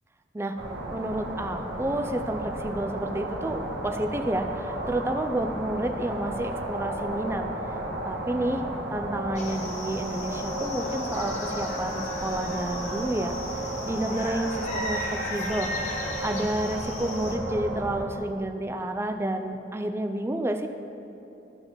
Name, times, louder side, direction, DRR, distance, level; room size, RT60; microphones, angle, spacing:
sound 1, 0.6-18.1, right 1 dB, 70° right, 1.5 m, -33 dB
voice 1, 0.9-7.5 8.1-8.6 8.9-15.7 16.2-20.7, right 1 dB, 15° right, 6 dB, 0.5 m, -30 dB
sound 2, 9.4-17.4, left 1 dB, 45° left, 1.3 m, -36 dB
13.5 x 4.7 x 5.6 m, 3.0 s
head